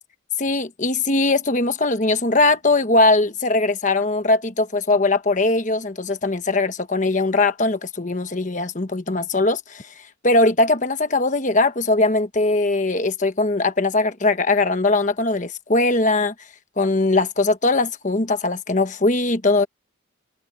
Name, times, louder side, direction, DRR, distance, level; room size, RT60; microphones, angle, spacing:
voice 1, 0.4-9.8 10.2-16.3 16.8-19.7, left 2 dB, 40° left, 1.2 m, -20 dB
head